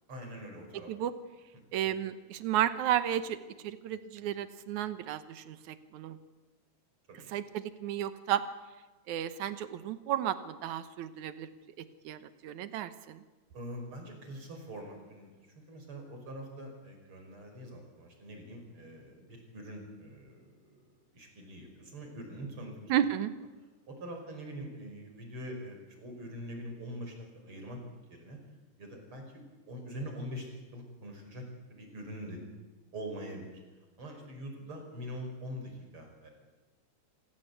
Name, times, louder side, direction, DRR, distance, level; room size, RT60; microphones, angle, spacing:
voice 1, 0.1-0.9 7.1-7.3 13.5-20.8 21.1-22.9 23.9-27.8 28.1-28.4 28.8-29.2 29.7-31.4 31.7-32.4 32.9-33.5 34.0-36.3, equal, 45° right, 3 dB, 5.9 m, -44 dB
voice 2, 1.7-3.4 3.6-6.2 7.3-8.4 9.1-11.5 12.0-13.2 22.9-23.3, right 11 dB, 80° right, 12 dB, 2.5 m, -33 dB
27.0 x 17.0 x 8.3 m, 1.2 s
omnidirectional pair, 3.4 m